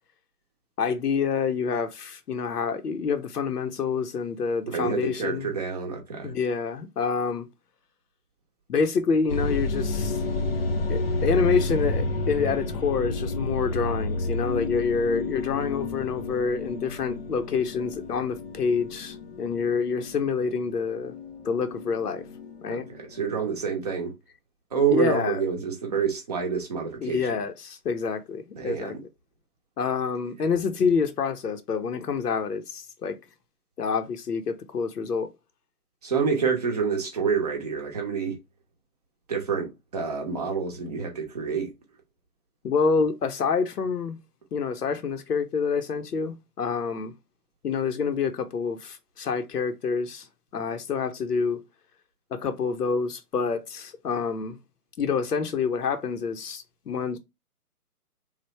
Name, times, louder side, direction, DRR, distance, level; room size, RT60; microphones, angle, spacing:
voice 1, 0.8-5.5 6.2-7.5 8.7-10.2 10.9-21.1 21.4-22.3 22.6-22.9 24.9-25.4 27.0-28.9 29.8-33.2 33.8-35.3 42.6-44.2 44.5-47.1 47.6-50.3 50.5-51.6 52.3-54.6 55.0-57.2, left 5 dB, 85° left, 0.7 m, -27 dB
voice 2, 4.7-6.3 22.7-24.1 24.7-27.4 28.6-29.0 36.0-38.4 39.3-41.7, right 6 dB, 25° right, 0.6 m, -28 dB
sound 1, 9.3-23.3, left 2 dB, 40° left, 0.4 m, -31 dB
3.2 x 2.1 x 3.1 m
figure-of-eight pair, 145°, 46 cm